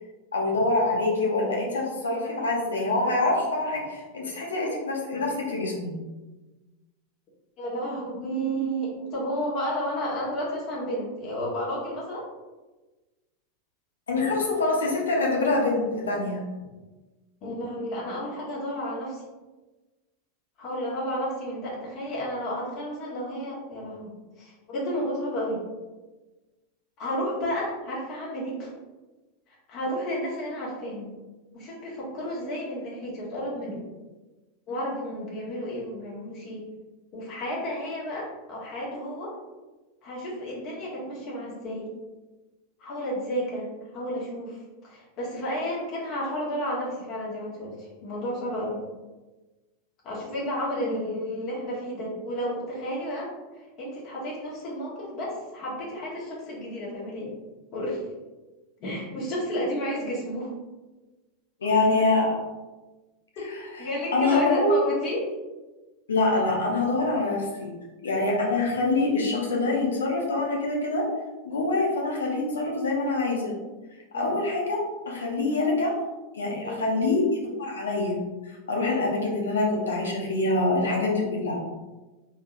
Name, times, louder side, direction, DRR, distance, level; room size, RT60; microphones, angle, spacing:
voice 1, 0.3-5.9 14.1-16.4 61.6-62.4 63.5-63.6 64.1-64.8 66.1-67.7 68.0-71.0 71.4-73.5 74.1-74.8 75.0-75.9 76.3-78.1 78.7-81.6, left 2 dB, 75° left, -2 dB, 1.0 m, -25 dB
voice 2, 7.6-12.2 17.4-19.2 20.6-24.1 24.4-25.6 27.0-28.7 29.7-31.1 31.5-33.8 34.7-36.6 37.1-39.3 40.0-41.9 42.8-48.8 50.0-57.3 57.7-58.0 58.8-60.5 63.4-63.5 63.8-65.3 74.1-74.4 76.6-76.9, equal, 45° left, -5 dB, 1.5 m, -32 dB
3.9 x 3.5 x 2.6 m, 1.2 s
figure-of-eight pair, 85°, 0 cm